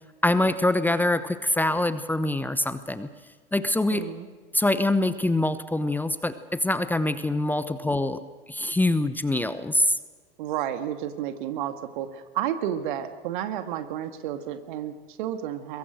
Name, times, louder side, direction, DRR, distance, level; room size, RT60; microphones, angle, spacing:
voice 1, 0.2-3.1 3.5-4.1 4.5-8.2 8.5-10.0, left 1 dB, 5° left, 12 dB, 1.0 m, -24 dB
voice 2, 3.9-4.3 10.4-15.8, right 10 dB, 55° right, 9 dB, 1.9 m, -31 dB
22.5 x 22.5 x 6.3 m, 1.5 s
figure-of-eight pair, 80°, 29 cm